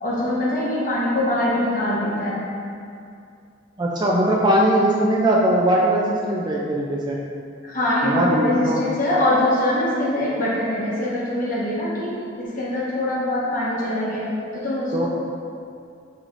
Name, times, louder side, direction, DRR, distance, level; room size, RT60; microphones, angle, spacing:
voice 1, 0.0-2.5 7.6-15.1, left 1 dB, 45° left, -7 dB, 0.9 m, -23 dB
voice 2, 3.8-7.2 8.0-8.8 14.9-15.1, right 1 dB, 20° right, -3 dB, 0.3 m, -20 dB
5.4 x 3.0 x 2.5 m, 2.4 s
head